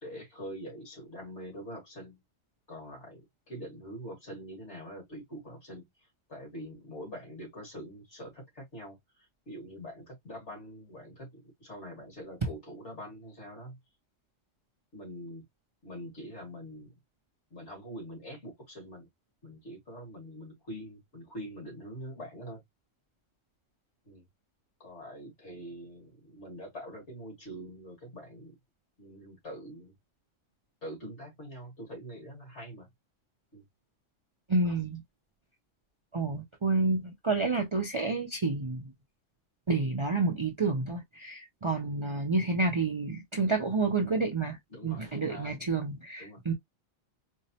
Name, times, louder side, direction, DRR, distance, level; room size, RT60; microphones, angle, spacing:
voice 1, 0.0-2.2 2.7-3.2 3.5-5.9 6.3-13.8 14.9-15.4 15.8-16.9 17.5-19.1 19.4-22.6 24.1-24.2 24.8-28.6 29.0-29.9 30.8-32.9 33.5-33.6 34.6-34.8 41.8-41.9 44.7-45.5 46.2-46.4, equal, 60° left, 2.2 m, -44 dB
voice 2, 34.5-35.0 36.1-38.9 39.7-44.6 44.8-46.5, right 3 dB, 50° right, 0.3 m, -29 dB
4.5 x 2.0 x 2.8 m
omnidirectional pair, 1.3 m